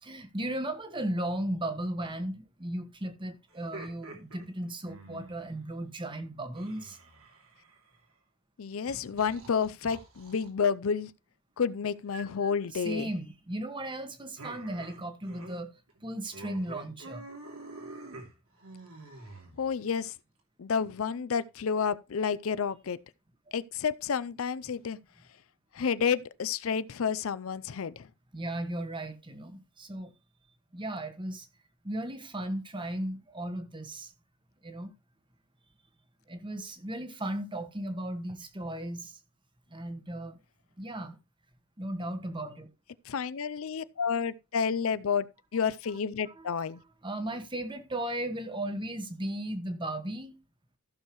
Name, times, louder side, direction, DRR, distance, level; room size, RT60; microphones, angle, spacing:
voice 1, 0.0-7.0 12.7-17.3 28.3-30.1 30.7-31.5 31.8-34.1 34.6-34.9 36.3-39.2 39.7-40.4 40.8-41.2 41.8-42.7 46.4-46.5 47.0-50.4, right 1 dB, 20° right, 1.2 m, -36 dB
sound 1, 3.5-5.5 6.5-7.9 8.9-10.5 12.1-12.5 14.4-15.6 15.9-16.0 16.3-19.9, right 2 dB, 75° right, 2.8 m, -47 dB
voice 2, 8.6-11.1 11.6-13.1 19.6-20.1 20.6-23.0 23.5-25.0 25.7-28.1 43.1-45.3 45.5-46.8, left 6 dB, 70° left, 0.5 m, -30 dB
14.5 x 6.5 x 3.0 m
head